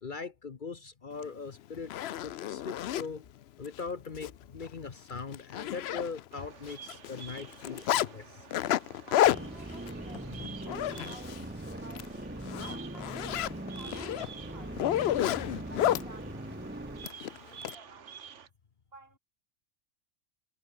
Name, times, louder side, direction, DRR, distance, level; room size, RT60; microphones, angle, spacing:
voice 1, 0.0-3.3 3.6-8.4 10.7-10.8, left 4 dB, 45° left, 1.1 m, -41 dB
Zipper (clothing), 1.2-1.3 1.7-3.1 3.6-3.8 4.1-4.3 4.6-4.7 5.1-6.4 6.7-8.1 8.5-11.4 11.8-12.1 12.4-16.1 17.0-17.7, left 12 dB, 65° left, 0.8 m, -30 dB
Bird vocalization bird call bird song, 6.3-18.5, right 8 dB, 75° right, 1.4 m, -50 dB
voice 2, 9.1-12.1 12.7-15.0 15.6-16.5 16.8-18.3 18.9-19.2, right 3 dB, 50° right, 2.8 m, -56 dB
sound 1, 9.3-17.1, right 1 dB, 10° right, 1.2 m, -41 dB
omnidirectional pair, 1.2 m